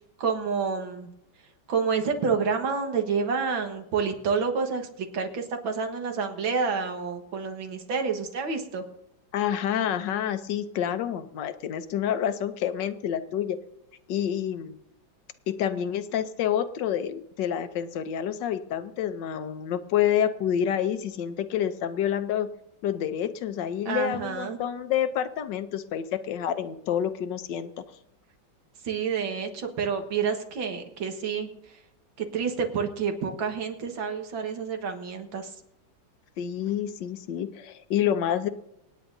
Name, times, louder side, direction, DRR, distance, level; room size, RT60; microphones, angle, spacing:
voice 1, 0.2-1.1 1.7-8.8 23.9-24.6 28.8-31.8 32.2-35.6, right 5 dB, 80° right, 4 dB, 2.2 m, -29 dB
voice 2, 9.3-13.6 14.1-14.8 15.5-22.5 22.8-27.7 36.4-38.5, left 9 dB, 70° left, 11 dB, 1.4 m, -28 dB
27.0 x 9.5 x 2.7 m, 0.81 s
omnidirectional pair, 2.1 m